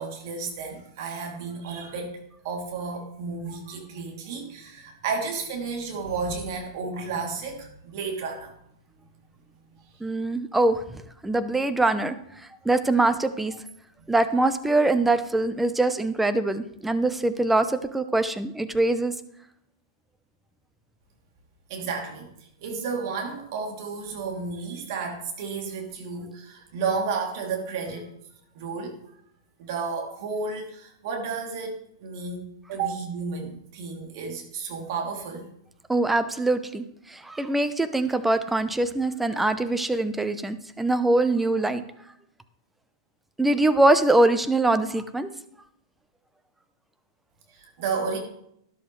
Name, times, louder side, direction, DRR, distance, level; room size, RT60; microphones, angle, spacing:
voice 1, 0.0-8.5 21.7-22.3 22.6-28.1 28.5-29.0 29.6-35.5 47.5-48.2, right 5 dB, 55° right, 1 dB, 3.0 m, -32 dB
voice 2, 10.0-10.8 11.2-12.2 12.6-13.6 14.1-19.1 35.9-36.8 37.1-41.8 43.4-45.3, right 2 dB, 5° right, 11 dB, 0.8 m, -23 dB
12.5 x 11.0 x 3.3 m, 0.73 s
hypercardioid pair, 110°, 2 cm